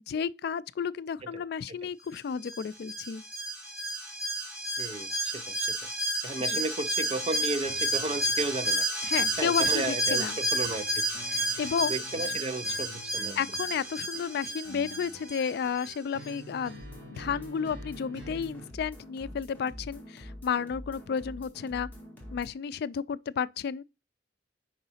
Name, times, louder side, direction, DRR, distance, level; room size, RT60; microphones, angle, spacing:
voice 1, 0.1-3.2 6.5-6.6 9.0-10.4 11.3-12.0 13.4-16.8 17.1-21.9 22.3-23.8, left 7 dB, 55° left, 0.3 m, -32 dB
voice 2, 1.3-1.8 4.8-5.9 6.2-8.9 9.4-11.1 11.5-11.6 11.9-13.4, right 3 dB, 30° right, 0.4 m, -34 dB
Alarm, 2.4-15.9 16.2-16.3, right 1 dB, 5° right, 1.9 m, -31 dB
sound 1, 7.6-18.6, right 1 dB, 70° right, 2.7 m, -48 dB
sound 2, 16.8-22.5, equal, 10° left, 1.8 m, -45 dB
4.9 x 3.9 x 5.5 m
head